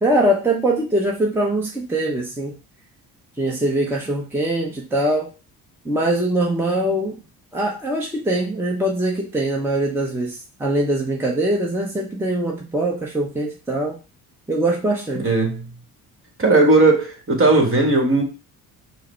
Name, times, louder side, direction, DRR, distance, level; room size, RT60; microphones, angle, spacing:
voice 1, 0.0-2.5 3.4-5.3 5.8-7.2 7.5-14.0 14.5-15.3, right 1 dB, 5° right, 1.0 m, -22 dB
voice 2, 15.2-15.7 16.4-18.2, right 2 dB, 30° right, 1.6 m, -16 dB
4.7 x 2.2 x 4.4 m
supercardioid pair, 60°, 43 cm